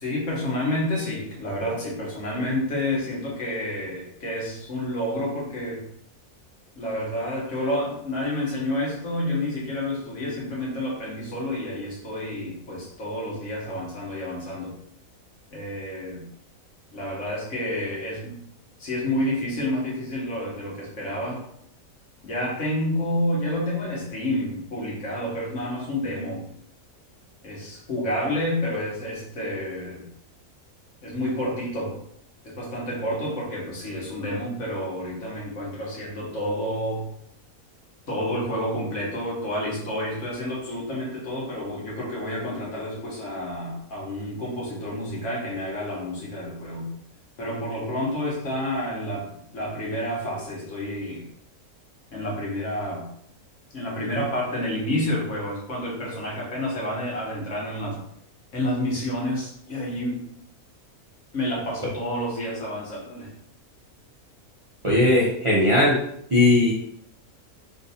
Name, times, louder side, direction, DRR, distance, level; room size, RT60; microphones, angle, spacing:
voice 1, 0.0-5.8 6.8-14.8 15.5-16.3 16.9-18.4 18.8-21.4 22.2-26.5 27.4-30.1 31.0-31.9 32.4-37.0 38.1-46.9 47.4-51.3 52.1-53.1 53.7-58.0 58.5-60.2 61.3-63.3, left 1 dB, 55° left, -4 dB, 1.4 m, -29 dB
voice 2, 64.8-66.0 66.3-66.7, left 1 dB, 45° right, -6 dB, 0.4 m, -18 dB
3.7 x 2.6 x 2.7 m, 0.72 s
omnidirectional pair, 1.6 m